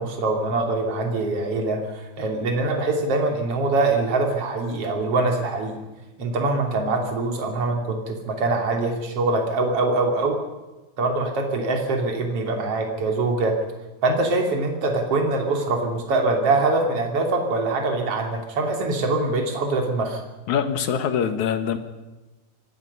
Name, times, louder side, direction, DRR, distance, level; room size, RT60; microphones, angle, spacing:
voice 1, 0.0-5.8 6.2-10.4 11.0-13.6 14.0-20.2, right 2 dB, 50° right, 3 dB, 3.9 m, -23 dB
voice 2, 20.5-21.8, left 8 dB, 75° left, 9 dB, 2.9 m, -23 dB
24.5 x 19.5 x 5.6 m, 1.1 s
omnidirectional pair, 3.4 m